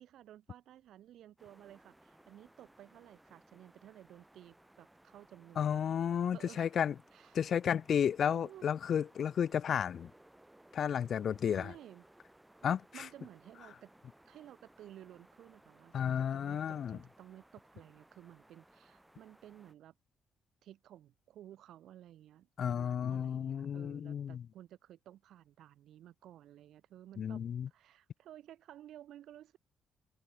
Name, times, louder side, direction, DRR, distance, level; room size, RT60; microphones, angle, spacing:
voice 1, 0.0-5.8 6.3-6.7 7.1-7.4 8.3-8.6 11.5-12.0 12.6-13.9 14.2-19.9 20.6-29.6, right 12 dB, 75° right, 3.5 m, -55 dB
sound 1, 1.4-19.7, right 1 dB, 10° right, 3.5 m, -63 dB
voice 2, 5.6-6.9 7.3-10.1 10.7-11.7 12.6-13.1 15.9-17.0 22.6-24.4 27.2-27.7, left 8 dB, 60° left, 0.4 m, -32 dB
cardioid pair, 90°, 0 cm